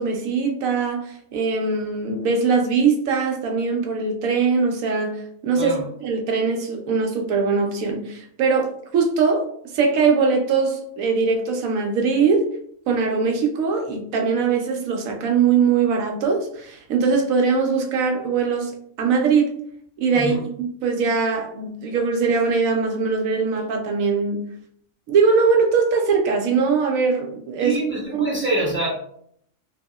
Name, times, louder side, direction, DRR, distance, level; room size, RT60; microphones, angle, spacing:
voice 1, 0.0-9.5 9.7-12.5 12.9-18.7 19.0-19.5 20.0-24.4 25.1-27.8 28.2-28.3, right 5 dB, 90° right, 3 dB, 1.0 m, -21 dB
voice 2, 27.6-28.9, right 2 dB, 15° right, -6 dB, 0.4 m, -25 dB
2.7 x 2.6 x 2.3 m, 0.66 s
omnidirectional pair, 1.4 m